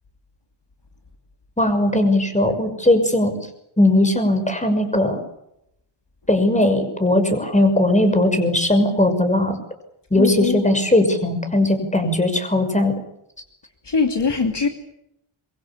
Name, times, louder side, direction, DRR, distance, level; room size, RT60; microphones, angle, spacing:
voice 1, 1.6-3.4 3.8-5.2 6.3-9.6 10.1-12.9, left 1 dB, 15° left, 7 dB, 6.2 m, -18 dB
voice 2, 10.1-10.6 13.8-14.7, left 5 dB, 60° left, 5 dB, 2.8 m, -21 dB
26.5 x 23.5 x 7.4 m, 0.81 s
wide cardioid pair, 95°, 48 cm